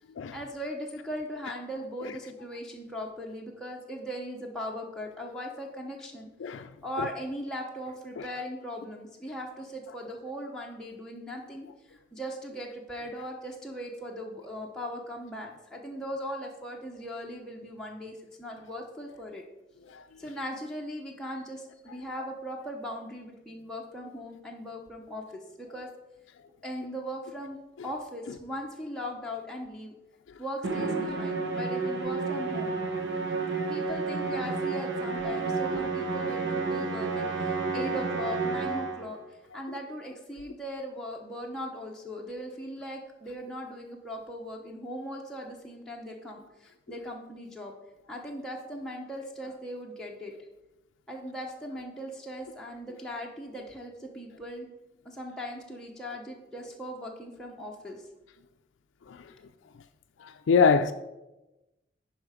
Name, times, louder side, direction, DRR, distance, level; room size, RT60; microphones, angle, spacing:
voice 1, 0.3-6.3 6.8-19.4 20.2-25.9 26.6-27.6 27.8-29.9 30.4-32.7 33.7-39.2 39.5-47.7 48.1-50.3 51.1-54.7 55.0-58.1 59.3-59.4, equal, 5° left, 0.8 m, -39 dB
voice 2, 6.4-6.7 7.0-7.1 8.2-8.3 19.9-20.0 35.7-35.8 59.1-59.3 60.2-60.9, left 5 dB, 80° left, 0.4 m, -25 dB
Musical instrument, 30.6-39.1, right 4 dB, 75° right, 1.3 m, -30 dB
11.0 x 4.9 x 4.9 m
head